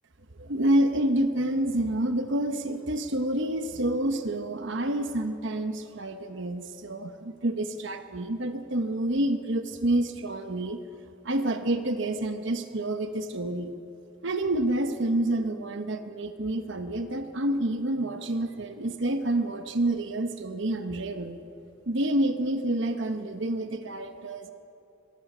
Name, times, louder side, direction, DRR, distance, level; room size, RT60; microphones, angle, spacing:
voice 1, 0.4-10.8 11.2-13.7 14.2-21.4 21.9-24.5, right 1 dB, 60° right, 8 dB, 1.1 m, -28 dB
23.0 x 19.5 x 6.2 m, 2.6 s
head